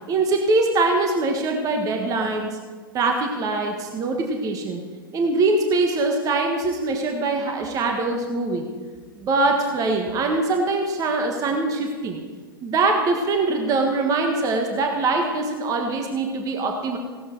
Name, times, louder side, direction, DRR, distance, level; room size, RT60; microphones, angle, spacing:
voice 1, 0.1-2.6 2.9-4.8 5.1-8.7 9.2-12.2 12.6-17.0, right 3 dB, 30° right, 3 dB, 1.4 m, -23 dB
16.5 x 12.5 x 4.6 m, 1.5 s
figure-of-eight pair, 100°, 12 cm